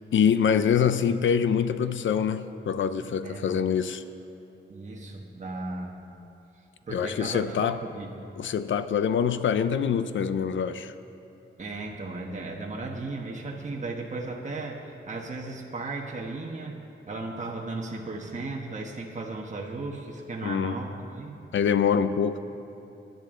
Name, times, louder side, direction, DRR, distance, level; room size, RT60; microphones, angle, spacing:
voice 1, 0.1-4.0 6.9-7.8 8.4-10.9 20.4-20.8 21.5-22.4, left 7 dB, 85° left, 12 dB, 0.6 m, -25 dB
voice 2, 4.7-6.0 6.9-8.1 11.6-21.4, right 3 dB, 40° right, -1 dB, 1.3 m, -36 dB
24.0 x 10.5 x 3.8 m, 2.9 s
wide cardioid pair, 110°, 19 cm